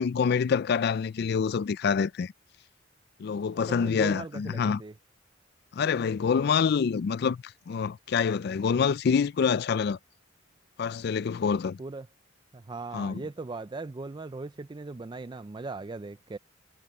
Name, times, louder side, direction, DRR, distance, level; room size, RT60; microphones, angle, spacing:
voice 1, 0.0-2.3 3.2-4.8 5.7-10.0 10.8-11.8 12.9-13.2, left 6 dB, 55° left, 0.3 m, -26 dB
voice 2, 3.5-4.9 11.8-12.1 12.5-16.4, right 3 dB, 25° right, 0.4 m, -39 dB
head